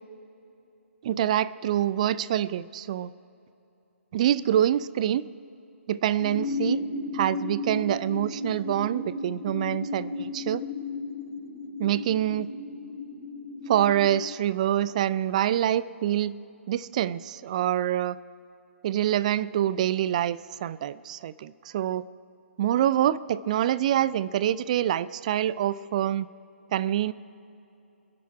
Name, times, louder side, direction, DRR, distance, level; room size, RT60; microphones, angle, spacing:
voice 1, 1.0-3.1 4.1-5.2 5.9-6.8 7.1-10.6 11.8-12.5 13.7-16.3 16.7-18.2 18.8-22.1 22.6-26.3 26.7-27.1, right 11 dB, 30° right, 18 dB, 0.4 m, -26 dB
sound 1, 6.2-14.2, left 2 dB, 85° left, 3.9 m, -34 dB
27.0 x 10.0 x 4.8 m, 2.9 s
figure-of-eight pair, 135°, 7 cm